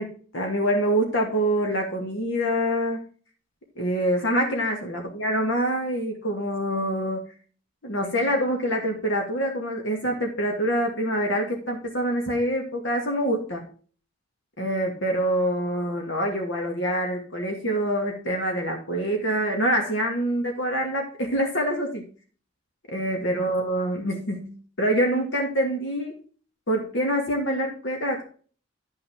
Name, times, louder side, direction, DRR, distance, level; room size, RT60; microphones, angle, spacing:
voice 1, 0.0-3.0 3.8-7.3 7.8-13.6 14.6-22.0 22.9-26.2 26.7-28.2, right 1 dB, 60° left, 2 dB, 2.2 m, -25 dB
12.0 x 6.0 x 3.6 m, 0.40 s
head